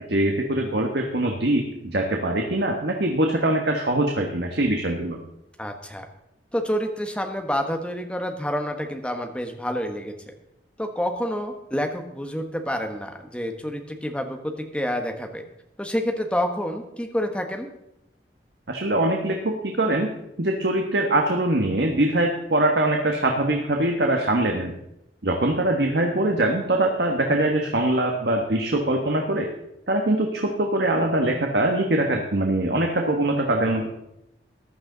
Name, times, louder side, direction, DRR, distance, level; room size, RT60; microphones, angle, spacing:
voice 1, 0.0-5.2 18.7-20.1 20.4-24.7 25.2-29.5 29.9-33.9, right 1 dB, 70° right, 2 dB, 1.3 m, -23 dB
voice 2, 5.6-6.0 6.5-10.1 10.8-15.4 15.8-17.7, equal, 5° left, 4 dB, 1.2 m, -28 dB
14.5 x 11.0 x 4.0 m, 0.84 s
head